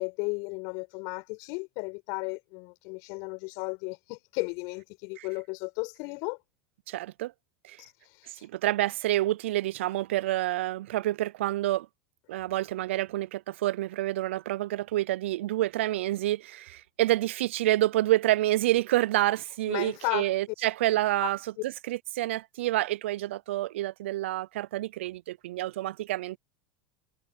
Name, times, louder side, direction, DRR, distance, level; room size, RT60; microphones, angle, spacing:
voice 1, 0.0-6.4 7.8-7.9 8.2-8.4 19.7-20.3 21.2-21.3, left 32 dB, 60° left, 7.4 m, -34 dB
voice 2, 6.9-7.3 7.6-7.8 8.4-11.9 12.3-26.4, right 15 dB, 75° right, 0.6 m, -28 dB
hypercardioid pair, 95°, 7 cm